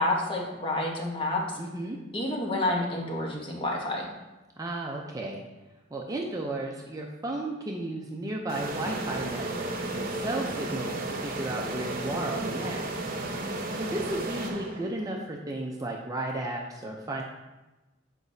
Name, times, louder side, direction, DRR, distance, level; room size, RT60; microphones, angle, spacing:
voice 1, 0.0-1.4 2.1-4.1, left 2 dB, 25° left, -1 dB, 1.1 m, -29 dB
voice 2, 1.6-2.0 4.6-5.4 5.9-12.8 13.8-17.2, right 1 dB, 20° right, 0 dB, 0.5 m, -34 dB
sound 1, 8.5-15.1, right 2 dB, 45° right, 0.8 m, -33 dB
8.0 x 4.9 x 2.7 m, 1.1 s
head